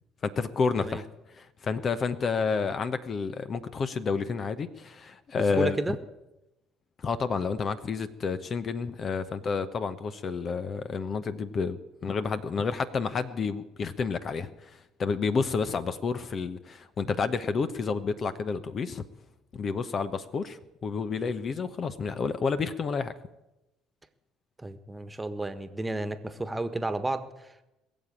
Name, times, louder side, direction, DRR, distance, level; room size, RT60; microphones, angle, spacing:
voice 1, 0.2-5.8 7.0-19.0 19.5-23.1, left 5 dB, 45° left, 12 dB, 0.9 m, -30 dB
voice 2, 5.3-5.9 24.6-27.6, right 2 dB, 15° right, 10 dB, 1.5 m, -32 dB
21.5 x 7.4 x 8.7 m, 0.97 s
hypercardioid pair, 55°, 0 cm